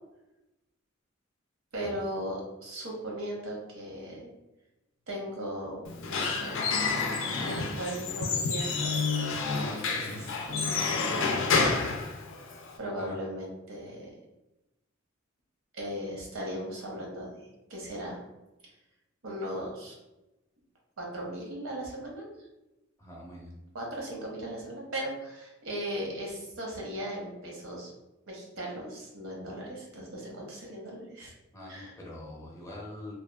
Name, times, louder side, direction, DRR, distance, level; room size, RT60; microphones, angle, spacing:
voice 1, 1.7-4.2 5.1-7.0 7.4-9.3 9.5-11.4 12.8-14.2 15.7-17.3 17.7-18.2 19.2-19.9 21.0-22.3 23.7-27.9 28.3-31.3 31.7-31.9, right 1 dB, 85° right, -2 dB, 0.8 m, -38 dB
Squeak / Wood, 5.9-12.8, left 4 dB, 70° left, 0.4 m, -29 dB
voice 2, 23.0-23.5 31.5-33.1, left 1 dB, 15° left, -3 dB, 0.5 m, -44 dB
2.8 x 2.1 x 2.2 m, 0.97 s
head